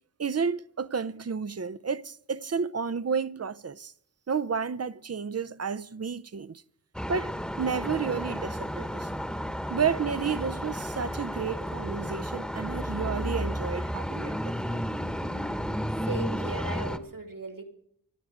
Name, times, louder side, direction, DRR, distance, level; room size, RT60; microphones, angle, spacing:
voice 1, 0.2-3.9 4.3-6.6 7.1-9.1 9.7-14.8, right 6 dB, 45° right, 0.6 m, -31 dB
sound 1, 6.9-17.0, equal, ahead, 1.1 m, -32 dB
voice 2, 16.0-17.6, right 2 dB, 65° right, 2.3 m, -37 dB
25.5 x 9.2 x 5.0 m
wide cardioid pair, 50°, 35 cm